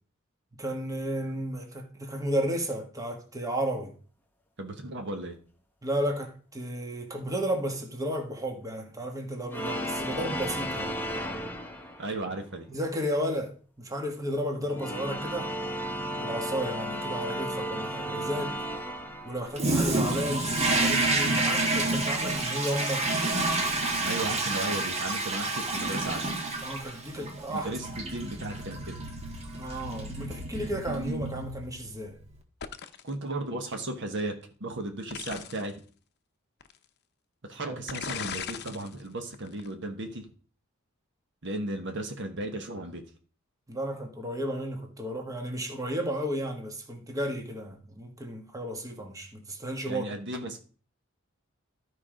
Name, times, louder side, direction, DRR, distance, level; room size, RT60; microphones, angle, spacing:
voice 1, 0.6-4.0 5.8-11.0 12.7-15.5 16.2-18.6 19.2-23.1 26.6-27.7 28.0-28.3 29.5-32.2 37.6-37.8 43.7-50.1, equal, 15° right, 1.5 m, -33 dB
voice 2, 4.6-5.4 12.0-12.7 24.0-26.4 27.5-29.0 33.0-35.8 37.4-40.3 41.4-43.0 49.9-50.6, right 2 dB, 60° right, 1.3 m, -35 dB
sound 1, 9.5-12.3 14.6-19.8, equal, 10° left, 1.1 m, -34 dB
Toilet flush, 19.5-31.9, right 2 dB, 30° right, 1.5 m, -29 dB
sound 2, 32.6-33.1 35.1-35.7 36.6-36.7 37.9-38.9 39.3-39.7, left 8 dB, 55° left, 0.7 m, -37 dB
12.5 x 4.7 x 5.1 m
head